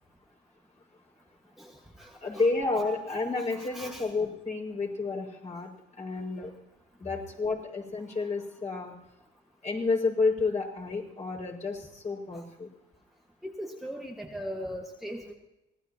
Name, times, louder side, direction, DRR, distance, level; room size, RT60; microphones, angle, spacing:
voice 1, 1.6-2.5 2.8-2.9 3.4-4.1 12.3-12.4 13.4-15.3, equal, ahead, 0 dB, 1.7 m, -40 dB
voice 2, 2.2-5.7 6.0-6.5 7.0-8.9 9.6-12.7, left 3 dB, 35° left, 0 dB, 6.1 m, -30 dB
25.0 x 18.0 x 3.0 m, 0.91 s
cardioid pair, 90°, 20 cm